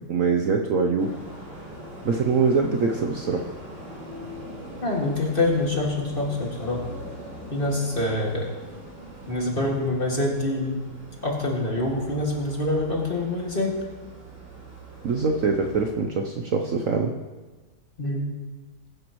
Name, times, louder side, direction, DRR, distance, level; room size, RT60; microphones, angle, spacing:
voice 1, 0.1-1.1 2.0-3.5 15.0-17.1, right 4 dB, 85° right, 3 dB, 0.7 m, -23 dB
sound 1, 1.0-15.9, equal, 50° right, 4.7 m, -41 dB
voice 2, 4.8-6.9 7.5-8.5 9.3-10.8 11.2-13.7 18.0-18.3, left 2 dB, 25° left, -2 dB, 2.1 m, -25 dB
21.0 x 10.5 x 3.1 m, 1.3 s
omnidirectional pair, 2.4 m